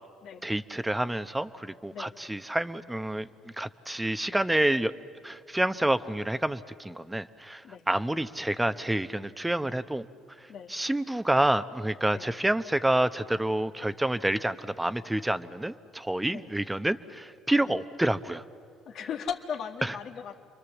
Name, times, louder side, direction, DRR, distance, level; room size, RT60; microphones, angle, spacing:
voice 1, 0.4-3.3 3.6-4.9 5.2-10.1 10.7-18.4, right 1 dB, 10° right, 11 dB, 1.0 m, -28 dB
voice 2, 18.9-20.4, left 7 dB, 60° left, 3 dB, 1.5 m, -37 dB
29.0 x 23.0 x 7.3 m, 2.3 s
supercardioid pair, 75°, 0 cm